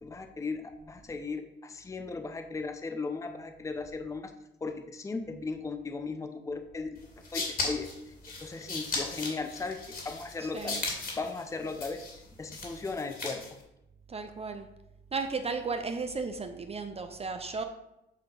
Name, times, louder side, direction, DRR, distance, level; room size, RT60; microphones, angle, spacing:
voice 1, 0.0-4.3 4.6-7.9 8.4-9.8 10.0-10.8 11.1-12.0 12.4-13.4, left 4 dB, 15° left, 7 dB, 0.6 m, -37 dB
sound 1, 7.0-13.6, left 3 dB, 50° left, 2.2 m, -37 dB
voice 2, 10.4-10.8 14.1-14.7 15.1-17.6, right 4 dB, 30° right, 7 dB, 0.6 m, -34 dB
8.3 x 2.9 x 5.2 m, 0.87 s
cardioid pair, 90°, 20 cm